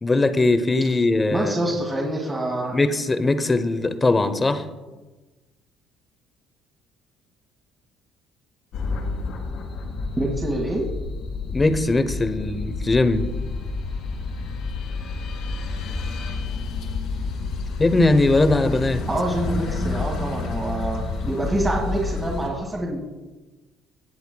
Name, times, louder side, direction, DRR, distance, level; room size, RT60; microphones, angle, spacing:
voice 1, 0.0-1.6 2.7-4.7 11.5-13.3 17.8-19.0, left 2 dB, 20° left, 10 dB, 0.8 m, -20 dB
voice 2, 1.3-2.8 10.2-10.8 19.1-23.0, right 1 dB, 20° right, -3 dB, 1.7 m, -26 dB
sound 1, 8.7-22.5, left 3 dB, 70° left, 2.2 m, -29 dB
18.0 x 7.9 x 2.3 m, 1.2 s
cardioid pair, 105°, 0 cm